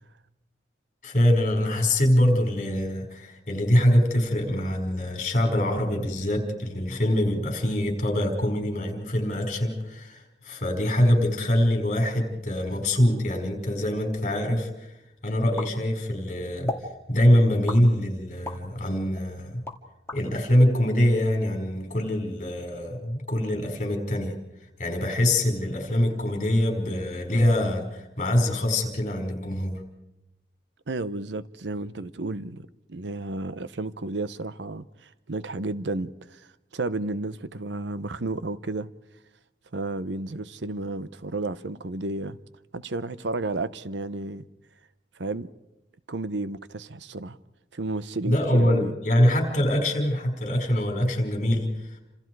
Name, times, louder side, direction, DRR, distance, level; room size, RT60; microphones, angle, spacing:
voice 1, 1.0-14.9 15.2-16.7 17.1-19.6 20.1-24.3 24.8-29.8 48.2-52.0, left 1 dB, 40° left, 5.1 m, -24 dB
sound 1, 15.6-16.2 16.7-16.9 17.7-18.7 19.1-20.2, left 2 dB, 15° left, 2.2 m, -35 dB
voice 2, 30.9-38.9 39.7-42.4 42.7-44.4 45.2-45.5 46.1-47.4 47.7-48.9, right 2 dB, 75° right, 0.9 m, -32 dB
29.5 x 27.0 x 4.8 m
head